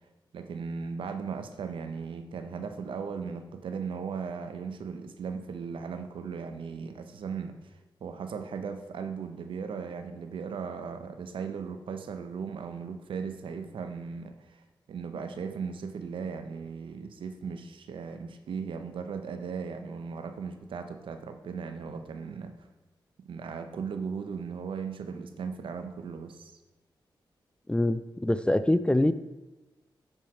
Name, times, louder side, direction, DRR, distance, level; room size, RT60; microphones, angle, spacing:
voice 1, 0.3-7.5 8.0-14.6 14.9-22.5 23.3-26.5, right 5 dB, 80° right, 8 dB, 0.7 m, -37 dB
voice 2, 27.7-29.1, left 1 dB, 10° left, 13 dB, 0.4 m, -24 dB
9.8 x 4.6 x 4.5 m, 1.1 s
cardioid pair, 55°, 9 cm